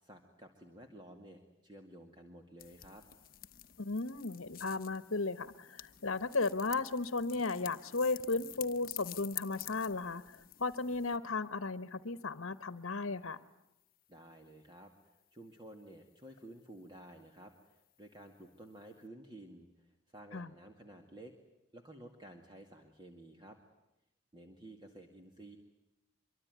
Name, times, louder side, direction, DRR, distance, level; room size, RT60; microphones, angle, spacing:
voice 1, 0.0-3.0 14.1-21.3 21.7-23.6 24.3-25.6, right 1 dB, 20° right, 3 dB, 2.2 m, -53 dB
sound 1, 2.6-11.2, left 14 dB, 45° left, 1.0 m, -49 dB
voice 2, 3.8-13.4 20.3-20.5, left 3 dB, 75° left, 13 dB, 1.1 m, -35 dB
25.0 x 24.0 x 9.5 m, 0.92 s
head